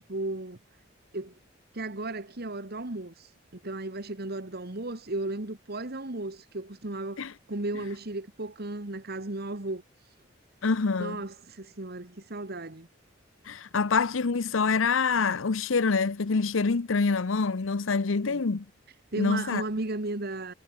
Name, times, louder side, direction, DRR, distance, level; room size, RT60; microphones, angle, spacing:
voice 1, 0.1-0.6 1.1-1.3 1.7-9.8 11.0-12.9 18.3-18.4 19.1-20.5, right 2 dB, 55° right, 1.8 m, -35 dB
voice 2, 10.6-11.2 13.4-18.6 19.2-19.6, left 4 dB, 90° left, 0.8 m, -26 dB
head